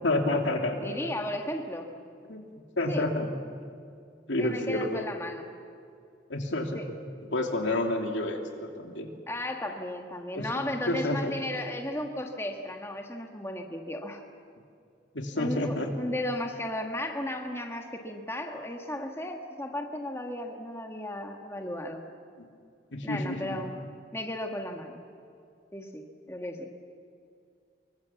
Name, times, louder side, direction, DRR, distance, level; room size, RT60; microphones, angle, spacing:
voice 1, 0.0-1.1 2.3-2.5 2.8-3.3 4.3-5.1 6.3-6.8 7.3-9.1 10.3-11.3 15.1-15.9 22.9-23.7, left 1 dB, 85° left, 3 dB, 2.8 m, -29 dB
voice 2, 0.8-1.9 2.9-3.1 4.4-5.5 6.7-6.8 9.3-14.2 15.4-22.0 23.0-23.7 24.1-25.0 25.7-26.7, left 1 dB, 15° left, 3 dB, 1.6 m, -35 dB
25.5 x 23.0 x 7.2 m, 2.4 s
head